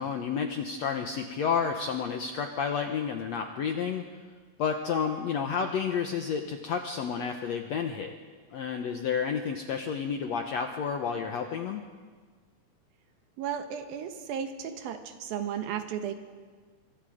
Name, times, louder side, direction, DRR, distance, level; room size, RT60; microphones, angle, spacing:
voice 1, 0.0-4.0 4.6-8.1 8.5-11.8, left 6 dB, 70° left, 5 dB, 1.6 m, -30 dB
voice 2, 13.4-16.1, right 8 dB, 75° right, 7 dB, 3.1 m, -34 dB
24.5 x 24.5 x 5.1 m, 1.5 s
omnidirectional pair, 4.3 m